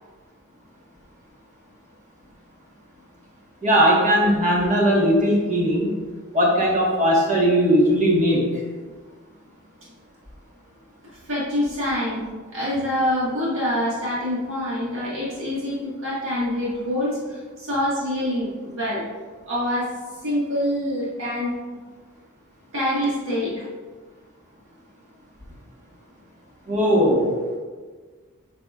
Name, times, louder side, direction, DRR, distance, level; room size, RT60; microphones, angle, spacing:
voice 1, 3.6-5.9 6.3-8.6 26.7-27.4, equal, 35° right, -3 dB, 1.5 m, -19 dB
voice 2, 11.1-19.1 19.5-19.9 20.2-21.6 22.7-23.7, left 1 dB, 65° right, -7 dB, 1.7 m, -26 dB
8.5 x 5.3 x 2.5 m, 1.4 s
head